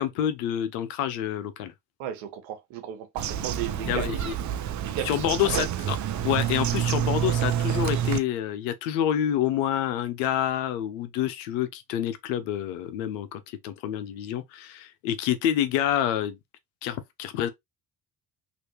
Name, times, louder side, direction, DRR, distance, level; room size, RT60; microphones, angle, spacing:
voice 1, 0.0-1.7 3.8-4.4 5.0-6.0 6.2-16.4 16.8-17.5, left 11 dB, 90° left, 0.7 m, -28 dB
voice 2, 2.0-4.1 4.8-5.1 5.6-5.7, right 10 dB, 70° right, 1.0 m, -34 dB
Bird vocalization bird call bird song, 3.2-8.2, right 10 dB, 40° right, 0.5 m, -28 dB
2.8 x 2.6 x 3.1 m
hypercardioid pair, 55°, 49 cm